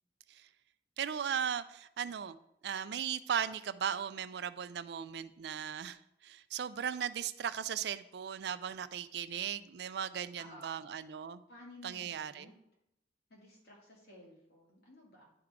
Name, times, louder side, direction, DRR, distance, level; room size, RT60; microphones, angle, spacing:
voice 1, 1.0-2.4 2.6-11.4 11.8-12.5, right 8 dB, 65° right, 14 dB, 0.4 m, -37 dB
voice 2, 10.4-10.8 11.5-12.5 13.3-15.3, left 1 dB, 60° left, -3 dB, 2.4 m, -55 dB
10.5 x 3.6 x 4.8 m, 0.80 s
head